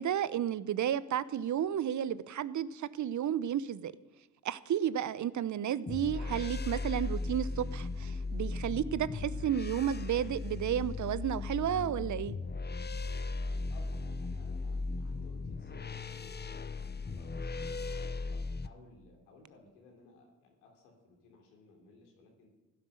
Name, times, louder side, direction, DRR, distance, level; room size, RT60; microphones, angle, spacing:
voice 1, 0.0-3.9 4.4-12.3, right 10 dB, 55° right, 17 dB, 0.8 m, -32 dB
sound 1, 5.9-18.7, left 3 dB, 30° left, 1.1 m, -37 dB
voice 2, 13.7-16.6 17.0-22.5, left 3 dB, 90° left, 1 dB, 3.5 m, -59 dB
15.5 x 10.5 x 6.6 m, 1.1 s
hypercardioid pair, 45°, 36 cm